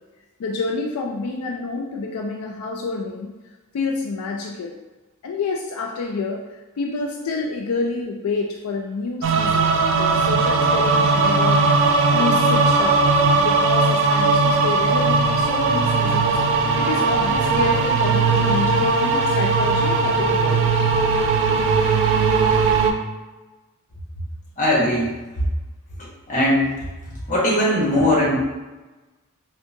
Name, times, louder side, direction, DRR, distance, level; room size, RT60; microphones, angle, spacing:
voice 1, 0.4-3.3 3.7-4.8 5.2-20.8, left 3 dB, 80° left, 0 dB, 0.4 m, -28 dB
sound 1, 9.2-22.9, right 4 dB, 60° right, 0.3 m, -18 dB
voice 2, 24.6-25.1 26.0-26.7 27.3-28.6, left 1 dB, 35° left, -5 dB, 1.0 m, -20 dB
3.6 x 2.1 x 2.6 m, 1.2 s
head